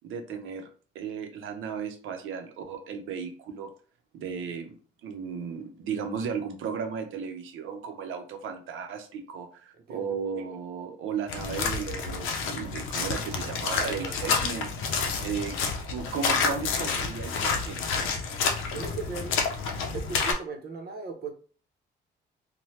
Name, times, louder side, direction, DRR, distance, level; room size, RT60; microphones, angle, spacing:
voice 1, 0.0-0.7 0.9-3.7 4.1-4.8 5.0-15.6 15.8-17.8, right 6 dB, 85° right, 6 dB, 0.6 m, -35 dB
sound 1, 11.3-20.3, left 5 dB, 85° left, 0.5 m, -29 dB
voice 2, 18.7-19.3 19.9-21.3, right 4 dB, 50° right, 4 dB, 0.8 m, -37 dB
2.8 x 2.2 x 3.1 m, 0.40 s
cardioid pair, 90°, 20 cm